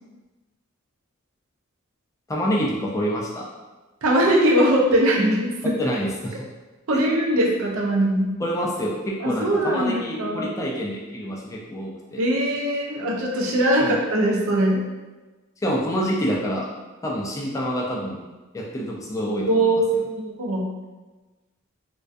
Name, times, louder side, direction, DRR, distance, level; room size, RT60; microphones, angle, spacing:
voice 1, 2.3-3.5 5.6-6.4 6.9-7.1 8.4-12.2 13.8-14.0 15.6-16.7 17.0-18.2 18.5-19.6, equal, 15° left, -3 dB, 0.3 m, -27 dB
voice 2, 4.0-5.7 6.9-8.3 9.2-10.5 12.2-14.8 19.5-20.0 20.3-20.7, right 1 dB, 70° right, -1 dB, 0.5 m, -21 dB
2.5 x 2.2 x 2.3 m, 1.2 s
head